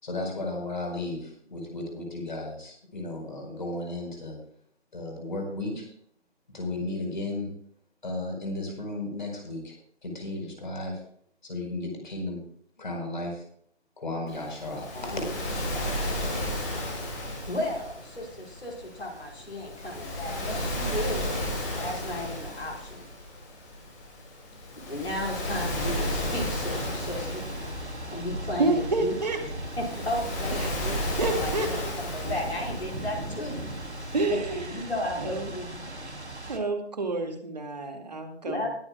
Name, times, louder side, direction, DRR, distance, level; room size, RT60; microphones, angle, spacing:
voice 1, 0.0-4.4 4.9-5.9 6.5-7.5 8.0-11.0 11.4-12.4 12.8-13.4 14.0-15.2, left 2 dB, 45° left, 2 dB, 4.8 m, -34 dB
Waves surf, 14.3-34.3, left 1 dB, 15° left, 2.6 m, -34 dB
voice 2, 14.9-15.3 15.7-15.9 17.5-23.0 24.9-27.4 28.1-29.1 29.8-31.0 31.4-33.7 34.3-34.4 34.7-35.9 38.5-38.7, left 1 dB, 65° left, 0 dB, 5.0 m, -34 dB
Thunder / Rain, 25.7-36.6, right 1 dB, 70° right, 3.5 m, -37 dB
voice 3, 28.6-29.4 30.5-30.7 31.2-31.9 34.1-34.9 35.2-35.5 36.0-36.1 36.5-38.7, right 3 dB, 35° right, 4 dB, 2.2 m, -29 dB
21.0 x 10.5 x 2.4 m, 0.63 s
figure-of-eight pair, 155°, 34 cm